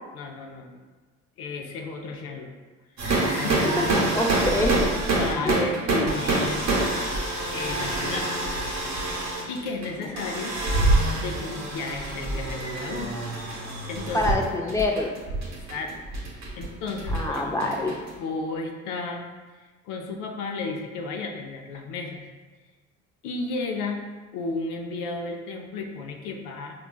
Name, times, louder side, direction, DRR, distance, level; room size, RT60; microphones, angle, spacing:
voice 1, 0.1-0.8 1.4-2.5 3.0-4.0 5.1-6.7 7.5-8.3 9.5-10.6 11.1-13.1 13.9-14.3 15.4-16.0 16.6-17.9 18.2-19.3 19.9-22.2 23.2-24.0 24.3-26.7, left 3 dB, 90° left, 3 dB, 0.5 m, -33 dB
sound 1, 3.0-18.1, right 2 dB, 60° right, 1.0 m, -26 dB
voice 2, 4.1-4.9 5.4-5.6 14.1-15.1 17.1-17.9, left 2 dB, 10° left, 0 dB, 0.5 m, -25 dB
4.5 x 2.3 x 2.3 m, 1.3 s
supercardioid pair, 75°, 31 cm